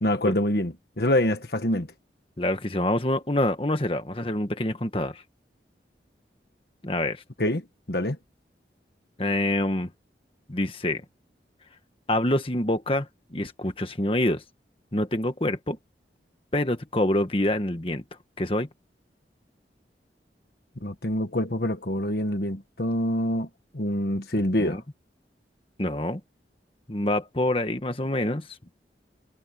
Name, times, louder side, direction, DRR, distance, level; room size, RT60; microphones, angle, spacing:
voice 1, 0.0-1.9 7.4-8.2 20.8-23.5 23.7-24.8, left 1 dB, 60° left, 1.7 m, -26 dB
voice 2, 2.4-5.2 6.8-7.2 9.2-9.9 10.5-11.0 12.1-14.4 14.9-15.8 16.5-18.0 18.4-18.7 24.6-24.8 25.8-26.2 26.9-28.5, left 1 dB, 30° left, 1.5 m, -26 dB
head